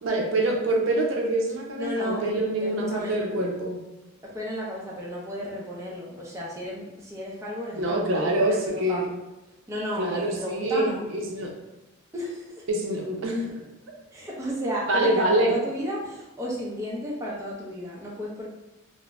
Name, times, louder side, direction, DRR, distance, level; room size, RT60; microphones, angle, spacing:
voice 1, 0.0-3.8 7.8-9.0 10.0-11.5 12.7-13.5 14.9-15.5, right 1 dB, 75° right, 0 dB, 0.5 m, -25 dB
voice 2, 1.8-2.2 2.6-3.2 4.2-9.1 9.7-11.1 12.1-12.6 14.1-18.5, equal, 15° right, -4 dB, 0.5 m, -33 dB
2.4 x 2.0 x 3.2 m, 1.0 s
head